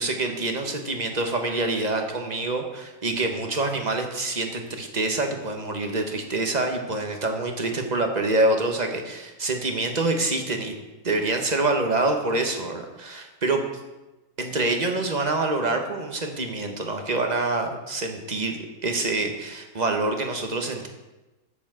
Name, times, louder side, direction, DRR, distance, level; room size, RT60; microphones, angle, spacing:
voice 1, 0.0-10.7 11.0-13.6 14.4-20.9, right 2 dB, 30° right, 4 dB, 1.1 m, -26 dB
8.2 x 7.2 x 7.6 m, 1.1 s
omnidirectional pair, 1.8 m